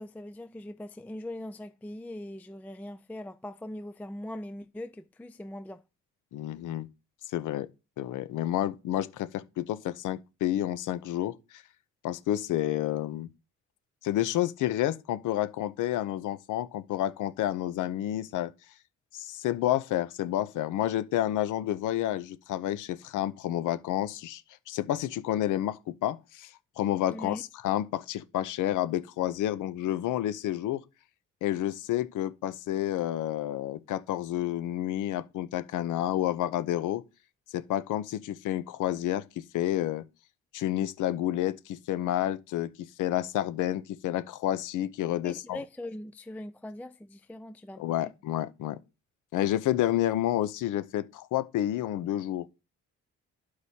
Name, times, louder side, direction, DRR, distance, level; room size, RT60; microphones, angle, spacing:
voice 1, 0.0-5.8 27.1-27.4 45.2-47.9, left 1 dB, 5° left, 0.3 m, -41 dB
voice 2, 6.3-6.9 7.3-7.7 8.0-11.6 12.0-13.3 14.0-18.5 19.1-24.4 24.7-30.8 31.4-37.0 37.5-40.0 40.5-45.6 47.8-48.8 49.3-52.5, left 13 dB, 80° left, 0.7 m, -30 dB
13.5 x 4.8 x 2.8 m
cardioid pair, 90°, 30 cm